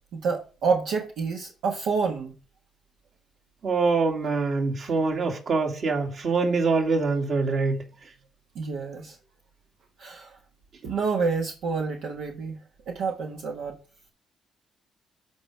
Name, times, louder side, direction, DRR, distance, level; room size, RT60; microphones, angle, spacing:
voice 1, 0.1-2.3 8.5-9.1 10.0-10.3 10.8-12.6 12.9-13.7, right 5 dB, 80° right, 1.5 m, -28 dB
voice 2, 3.6-7.8, right 4 dB, 60° right, 2.5 m, -24 dB
12.5 x 4.9 x 3.3 m
cardioid pair, 80°, 0 cm